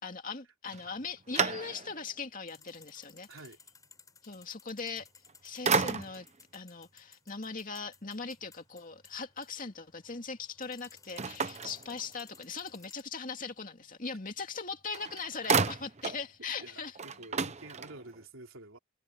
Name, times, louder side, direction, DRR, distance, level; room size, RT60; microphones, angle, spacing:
voice 1, 0.0-3.3 4.2-5.1 5.4-6.3 6.5-16.9, left 5 dB, 40° left, 2.5 m, -40 dB
sound 1, 0.7-2.1 2.7-2.8 5.0-5.3 5.6-6.4 11.2-12.4 14.5-14.6 14.9-16.3 16.6-16.7 16.9-18.2, right 5 dB, 35° right, 0.9 m, -32 dB
sound 2, 2.5-13.0, left 5 dB, 20° left, 6.4 m, -59 dB
voice 2, 3.3-3.6 16.6-18.8, right 2 dB, 85° right, 3.8 m, -49 dB
head